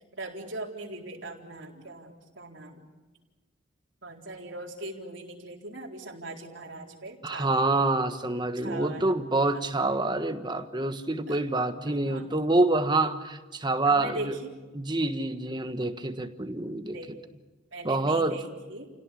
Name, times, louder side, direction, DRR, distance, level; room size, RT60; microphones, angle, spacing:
voice 1, 0.1-2.9 4.0-7.6 8.6-9.2 9.5-9.7 11.3-11.4 11.9-12.3 13.8-14.5 16.9-17.1 17.7-18.9, right 2 dB, 65° right, 0 dB, 4.1 m, -40 dB
voice 2, 7.2-14.3 14.7-17.0 17.8-18.3, right 2 dB, 20° right, 8 dB, 1.3 m, -27 dB
30.0 x 17.5 x 8.4 m, 1.2 s
head